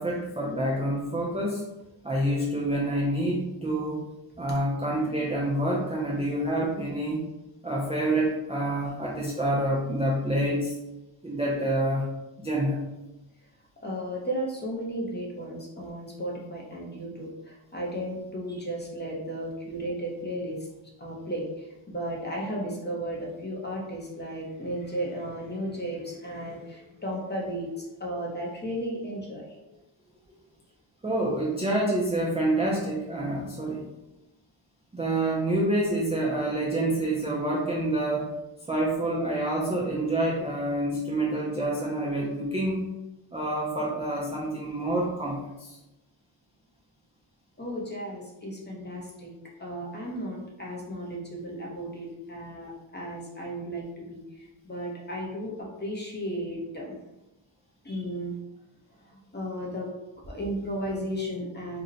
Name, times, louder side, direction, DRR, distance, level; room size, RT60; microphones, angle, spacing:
voice 1, 0.0-1.6 2.0-4.0 4.4-7.2 7.6-10.8 11.2-12.1 12.4-12.8 31.0-33.8 34.9-38.3 38.7-42.9 43.3-45.8, right 1 dB, 15° right, -5 dB, 0.3 m, -27 dB
voice 2, 13.8-20.7 21.0-29.8 47.6-49.3 49.6-57.0 57.8-58.3 59.0-59.9 60.3-61.8, equal, 20° left, -3 dB, 0.6 m, -34 dB
2.7 x 2.1 x 3.7 m, 0.99 s
wide cardioid pair, 155°, 50 cm